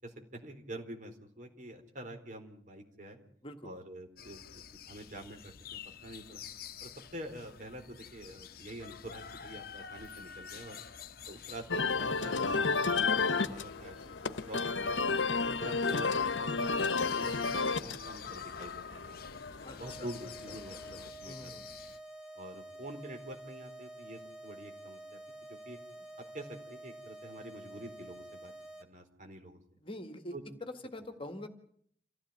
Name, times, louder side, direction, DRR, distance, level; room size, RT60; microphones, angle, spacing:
voice 1, 0.0-3.2 3.6-6.4 6.8-10.8 11.3-15.2 15.6-19.2 19.8-20.8 21.2-21.6 22.4-25.2 25.5-25.8 26.3-28.5 28.8-29.6 30.3-30.4, right 1 dB, 45° right, 5 dB, 4.1 m, -47 dB
Dawn La Victoria-Cesar-Colombia, 4.2-22.0, left 7 dB, 55° left, 1.0 m, -49 dB
sound 1, 11.7-21.1, left 4 dB, 90° left, 1.0 m, -32 dB
voice 2, 19.6-20.1 20.9-21.7 29.8-30.3 30.6-31.5, left 1 dB, 30° left, 8 dB, 1.9 m, -45 dB
sound 2, 19.8-28.8, right 1 dB, 5° right, 2.4 m, -49 dB
27.5 x 15.5 x 8.7 m, 0.64 s
head